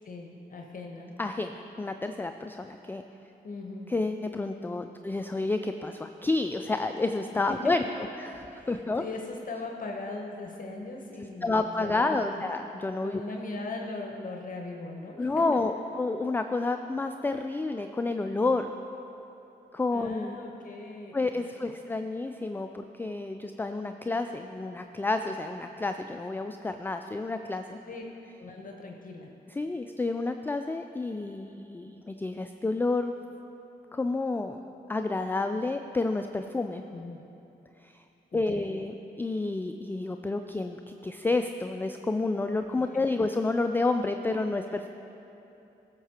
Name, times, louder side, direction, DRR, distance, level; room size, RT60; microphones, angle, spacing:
voice 1, 0.0-1.1 3.4-3.9 7.5-7.6 7.8-7.9 8.5-12.4 13.0-15.4 19.9-21.7 27.8-28.1 28.4-29.3 36.9-37.2 38.3-38.8 42.7-43.0, left 3 dB, 45° left, 1 dB, 0.9 m, -39 dB
voice 2, 1.2-3.0 3.9-7.8 8.2-9.0 11.4-13.2 15.2-18.7 19.7-20.4 21.1-27.8 29.6-33.1 33.9-34.6 34.9-36.8 37.8-37.9 38.3-44.9, left 3 dB, 10° left, 7 dB, 0.3 m, -30 dB
14.0 x 6.7 x 2.9 m, 2.9 s
supercardioid pair, 50°, 19 cm